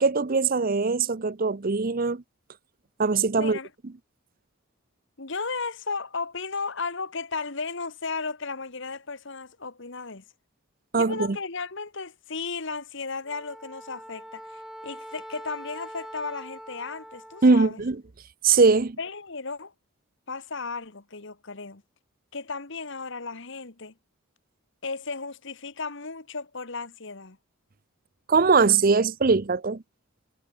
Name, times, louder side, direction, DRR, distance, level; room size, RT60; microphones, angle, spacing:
voice 1, 0.0-2.2 3.0-3.6 10.9-11.2 17.4-18.0 18.4-19.0 28.3-29.8, right 4 dB, 40° right, 0.7 m, -21 dB
voice 2, 3.3-3.7 5.2-10.2 10.9-17.8 19.0-19.7 20.3-21.8 22.3-23.9 24.8-27.4, left 4 dB, 55° left, 1.6 m, -35 dB
Wind instrument woodwind instrument, 13.2-17.7, equal, ahead, 3.4 m, -43 dB
head